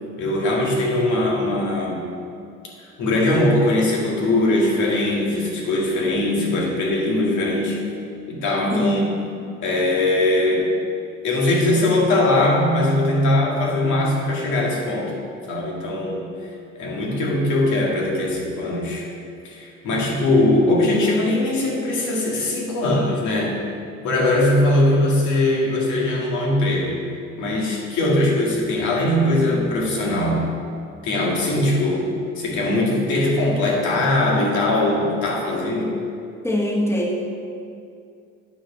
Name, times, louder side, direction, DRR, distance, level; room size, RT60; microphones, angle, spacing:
voice 1, 0.2-2.1 3.0-7.8 8.3-9.1 9.6-10.7 11.2-15.2 15.5-16.3 16.8-19.1 19.4-23.6 24.0-27.0 27.4-30.4 31.0-32.1 32.4-36.0, left 1 dB, 85° left, -2 dB, 2.0 m, -20 dB
voice 2, 8.7-9.1 36.4-37.2, equal, 10° left, -1 dB, 1.3 m, -23 dB
9.0 x 5.0 x 6.1 m, 2.4 s
cardioid pair, 115°, 29 cm